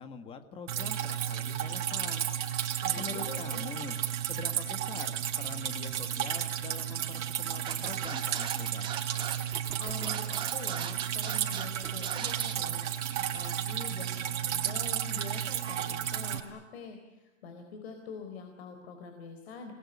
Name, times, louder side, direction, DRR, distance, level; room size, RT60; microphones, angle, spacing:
voice 1, 0.0-2.3 2.9-4.0 4.3-8.9, left 5 dB, 15° left, 9 dB, 1.6 m, -44 dB
Drip, 0.7-16.4, right 10 dB, 60° right, 3.8 m, -33 dB
voice 2, 2.8-3.7 9.8-12.8 13.2-19.7, left 5 dB, 50° left, 6 dB, 4.0 m, -45 dB
sound 1, 3.8-4.9 6.1-7.1 7.7-8.8 9.2-13.6 13.9-14.4, right 7 dB, 30° right, 7.2 m, -57 dB
Scratching (performance technique), 7.7-12.5, right 8 dB, 10° right, 1.5 m, -39 dB
29.0 x 20.5 x 9.7 m, 1.1 s
supercardioid pair, 175°, 40 cm